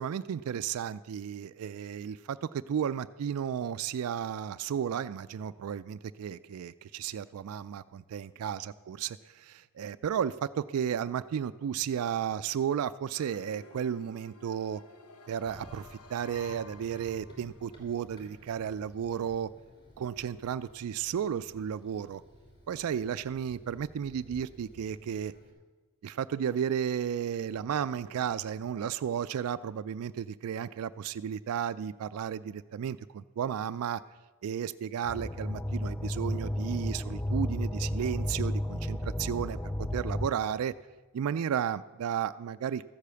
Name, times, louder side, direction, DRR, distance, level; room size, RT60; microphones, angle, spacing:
voice 1, 0.0-14.8 15.3-19.5 20.0-22.2 22.7-25.3 26.0-34.0 34.4-39.6 39.9-40.7 41.1-42.8, right 8 dB, 75° right, 13 dB, 0.3 m, -33 dB
sound 1, 13.2-17.8, left 4 dB, 90° left, 1.0 m, -53 dB
Run, 15.4-25.5, equal, 25° left, 3.1 m, -54 dB
sound 2, 35.0-40.3, left 1 dB, 5° left, 0.3 m, -32 dB
14.0 x 8.3 x 6.9 m, 1.3 s
head